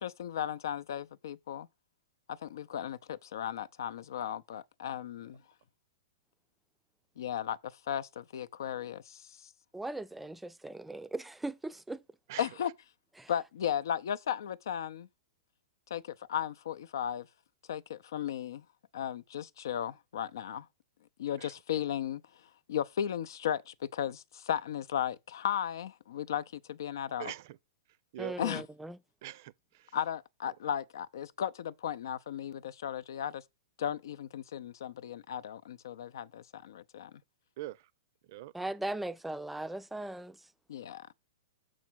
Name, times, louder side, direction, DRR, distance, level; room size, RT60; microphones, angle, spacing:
voice 1, 0.0-1.7 2.3-5.4 7.2-9.5 12.4-12.7 13.3-15.1 15.9-17.3 17.7-18.6 18.9-20.7 21.2-22.2 22.7-27.3 28.4-28.6 29.9-33.4 33.8-37.1 40.7-41.1, left 9 dB, 70° left, 0.5 m, -35 dB
voice 2, 9.7-12.0 13.2-13.3 28.2-29.0 38.5-40.4, right 2 dB, 5° right, 0.4 m, -38 dB
voice 3, 27.2-27.6 27.9-28.4 29.2-30.0 37.6-37.9 38.2-38.5, right 16 dB, 55° right, 0.5 m, -43 dB
6.2 x 4.0 x 6.1 m
hypercardioid pair, 115°, 2 cm